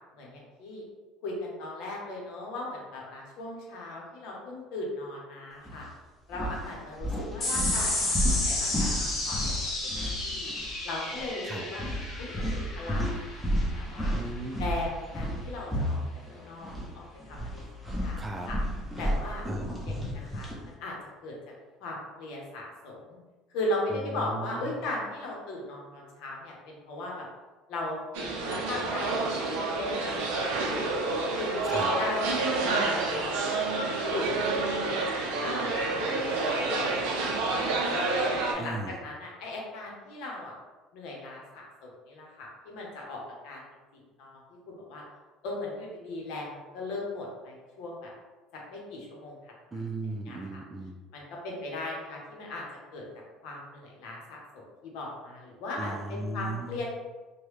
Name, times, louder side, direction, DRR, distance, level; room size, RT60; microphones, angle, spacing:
voice 1, 0.1-0.9 1.2-5.9 6.3-10.5 10.8-11.8 12.2-13.3 13.6-14.1 14.6-16.0 16.3-17.6 18.0-18.6 19.0-19.5 19.8-20.9 21.2-21.3 21.8-23.2 23.5-27.3 27.7-31.0 31.4-37.1 37.6-38.1 38.5-40.5 40.9-43.6 44.2-44.4 44.7-45.0 45.4-48.1 48.5-49.8 50.3-50.6 51.1-52.6 52.9-53.0 53.4-56.9, left 2 dB, 75° left, -2 dB, 0.9 m, -38 dB
sound 1, 5.6-5.9 6.3-10.8 11.0-11.3 11.8-16.9 17.2-20.6, equal, ahead, 0.7 m, -32 dB
sound 2, 7.4-14.2, left 2 dB, 40° left, 1.0 m, -32 dB
voice 2, 14.1-14.7 18.2-18.5 19.5-19.7 24.1-24.8 31.6-31.9 38.6-39.0 49.7-51.0 55.8-56.8, right 2 dB, 20° right, 3 dB, 0.3 m, -36 dB
sound 3, 28.1-38.5, right 3 dB, 90° right, 0.5 m, -29 dB
3.0 x 2.2 x 3.2 m, 1.3 s
supercardioid pair, 105°, 0 cm